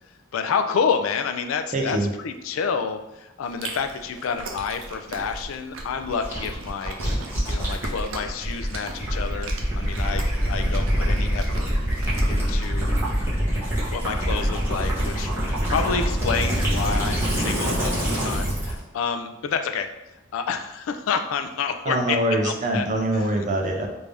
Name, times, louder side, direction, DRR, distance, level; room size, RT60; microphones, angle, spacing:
voice 1, 0.3-2.0 2.2-7.0 7.5-11.7 12.3-12.9 13.9-19.9 20.3-22.9, left 6 dB, 85° left, 7 dB, 0.4 m, -29 dB
voice 2, 1.7-2.1 21.9-23.9, right 1 dB, 40° right, 2 dB, 0.5 m, -24 dB
Chewing mastication, 3.4-12.7, right 2 dB, 85° right, 0.6 m, -39 dB
Gurgling / Liquid, 6.2-18.8, equal, 10° right, 1.1 m, -25 dB
3.4 x 2.6 x 3.3 m, 0.94 s
head